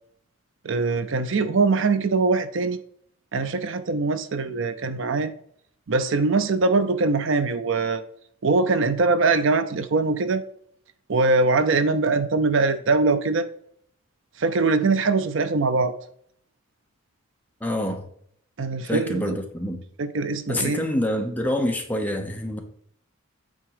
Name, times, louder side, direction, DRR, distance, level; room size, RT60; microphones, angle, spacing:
voice 1, 0.6-2.8 3.3-5.3 5.9-8.0 8.4-10.4 11.1-13.5 14.4-15.9 18.6-19.4 20.0-20.8, right 3 dB, 60° right, 0.5 m, -22 dB
voice 2, 17.6-18.0 18.8-19.8 20.5-22.6, left 1 dB, 10° left, 0.9 m, -26 dB
9.1 x 3.7 x 4.9 m
head